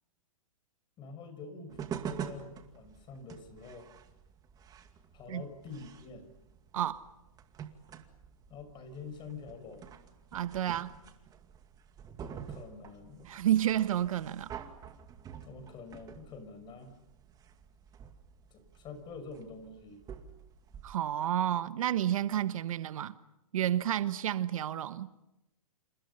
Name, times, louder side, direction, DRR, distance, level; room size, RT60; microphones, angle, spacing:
voice 1, 1.0-3.9 5.1-6.3 8.5-10.0 12.2-13.3 15.4-17.0 18.5-20.0, left 4 dB, 25° left, 5.9 m, -46 dB
sound 1, 1.7-20.9, right 8 dB, 20° right, 2.3 m, -47 dB
voice 2, 6.7-7.0 10.3-10.9 13.3-14.5 20.8-23.2 23.5-25.1, right 11 dB, 70° right, 1.3 m, -30 dB
29.5 x 28.0 x 5.6 m
hypercardioid pair, 135°, 18 cm